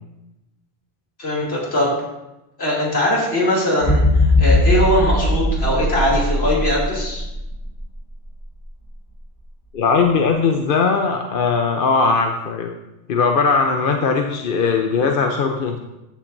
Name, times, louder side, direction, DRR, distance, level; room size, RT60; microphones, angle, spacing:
voice 1, 1.2-1.9 2.6-7.2, left 1 dB, 75° left, -5 dB, 3.1 m, -20 dB
sound 1, 3.8-7.8 8.3-8.5, left 1 dB, 40° left, 3.4 m, -18 dB
voice 2, 9.7-12.7 13.1-15.8, left 4 dB, 60° left, 3 dB, 0.9 m, -19 dB
14.5 x 7.3 x 2.6 m, 0.97 s
omnidirectional pair, 1.1 m